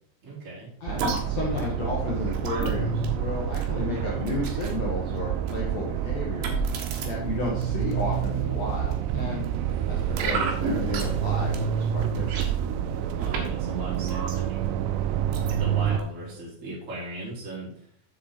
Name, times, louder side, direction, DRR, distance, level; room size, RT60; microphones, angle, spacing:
voice 1, 0.2-0.7 13.1-14.7 14.9-17.9, right 1 dB, 20° right, -7 dB, 2.3 m, -39 dB
voice 2, 0.8-6.6 7.1-9.4 9.9-12.4, left 3 dB, 80° left, -3 dB, 1.5 m, -33 dB
sound 1, 0.9-16.0, right 10 dB, 85° right, 2.6 m, -28 dB
sound 2, 1.0-4.8 5.5-5.7 6.4-7.1 7.6-8.2 8.9-9.5 10.2-11.3 11.5-11.6 12.0-13.5 13.7-14.7 15.3-16.0 16.3-16.4, right 3 dB, 65° right, 2.6 m, -33 dB
7.4 x 7.0 x 4.3 m, 0.65 s
omnidirectional pair, 5.3 m